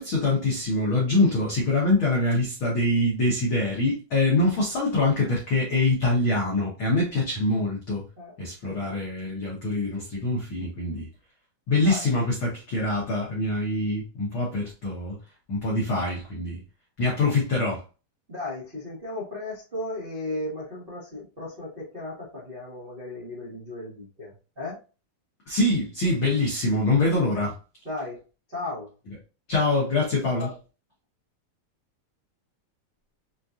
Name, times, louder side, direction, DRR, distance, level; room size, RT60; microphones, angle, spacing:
voice 1, 0.0-8.0 8.4-11.1 11.7-15.2 15.5-16.6 17.0-17.8 25.5-27.6 29.5-30.6, left 2 dB, 85° left, 1.1 m, -24 dB
voice 2, 8.6-9.0 11.8-12.1 18.3-24.8 27.8-28.2 28.5-28.9 30.2-30.5, left 2 dB, 65° right, 0.5 m, -35 dB
6.0 x 2.4 x 2.6 m
omnidirectional pair, 3.9 m